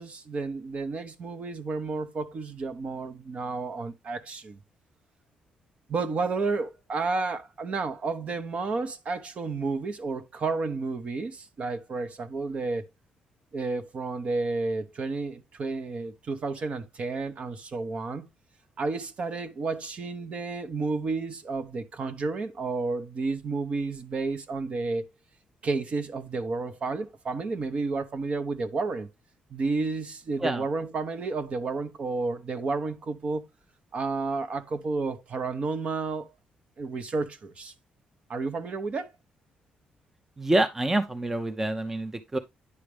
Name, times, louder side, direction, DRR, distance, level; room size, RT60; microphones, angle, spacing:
voice 1, 0.0-4.6 5.9-12.8 13.5-18.3 18.8-25.0 25.6-29.1 29.5-33.4 33.9-36.3 36.8-37.7 38.3-39.1, right 3 dB, 45° right, 1.0 m, -31 dB
voice 2, 40.4-42.4, right 1 dB, 15° right, 0.7 m, -26 dB
9.8 x 5.0 x 3.3 m
cardioid pair, 115°, 3 cm